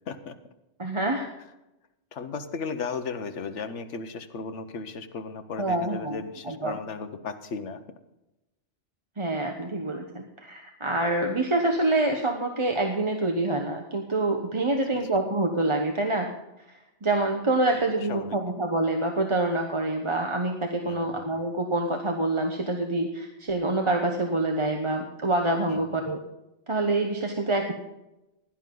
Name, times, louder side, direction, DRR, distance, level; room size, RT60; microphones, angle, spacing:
voice 1, 0.1-0.4 2.1-7.8 18.0-18.4 20.9-21.3 25.7-26.1, left 5 dB, 70° left, 9 dB, 1.3 m, -35 dB
voice 2, 0.8-1.3 5.6-6.2 6.4-6.8 9.2-16.3 16.7-26.2 26.7-27.7, right 2 dB, 25° right, 3 dB, 1.0 m, -26 dB
16.0 x 11.0 x 3.9 m, 0.93 s
omnidirectional pair, 1.3 m